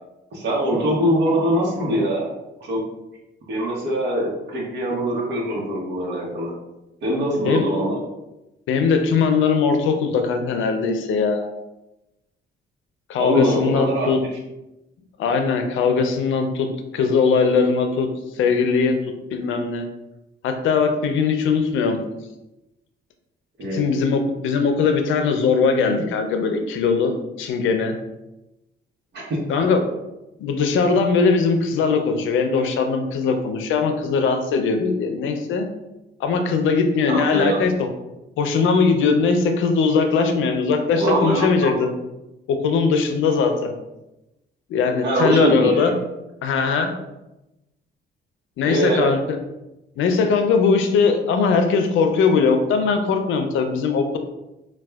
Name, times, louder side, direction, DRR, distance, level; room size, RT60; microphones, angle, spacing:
voice 1, 0.3-2.3 2.6-2.8 3.5-6.5 7.0-8.0 13.2-14.1 23.6-23.8 29.1-29.2 37.1-37.6 40.9-41.7 45.0-45.9 48.6-49.1, right 1 dB, 60° right, -4 dB, 0.9 m, -22 dB
voice 2, 8.7-11.5 13.1-14.2 15.2-16.7 16.9-18.1 18.4-18.9 19.3-19.8 20.4-22.0 23.7-28.0 29.5-29.8 30.4-35.7 36.2-37.7 38.4-41.9 42.5-43.7 44.7-45.9 46.4-46.9 48.6-49.2 50.0-54.2, left 5 dB, 80° left, 6 dB, 0.5 m, -20 dB
4.2 x 2.2 x 2.3 m, 0.95 s
cardioid pair, 90°, 20 cm